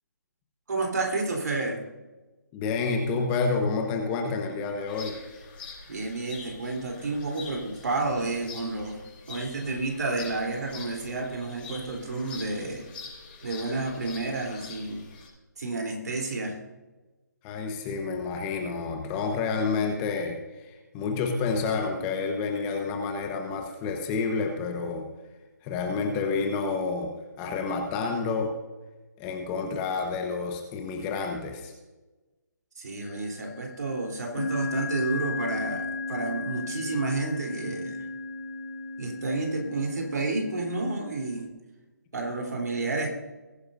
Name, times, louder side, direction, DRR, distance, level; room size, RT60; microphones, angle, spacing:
voice 1, 0.7-1.8 5.9-9.0 9.3-12.9 13.4-15.0 15.6-16.6 32.8-38.0 39.0-41.5 42.1-43.1, right 3 dB, 65° right, 1 dB, 3.5 m, -30 dB
voice 2, 2.5-5.2 17.4-25.0 25.6-27.1 27.4-28.5 29.2-31.7, left 4 dB, 15° left, 3 dB, 1.1 m, -29 dB
sound 1, 4.9-15.3, left 4 dB, 35° left, 4.8 m, -45 dB
sound 2, 33.0-33.5 34.3-41.5, left 3 dB, 50° left, 1.8 m, -35 dB
21.0 x 9.9 x 2.6 m, 1.2 s
hypercardioid pair, 160°, 10 cm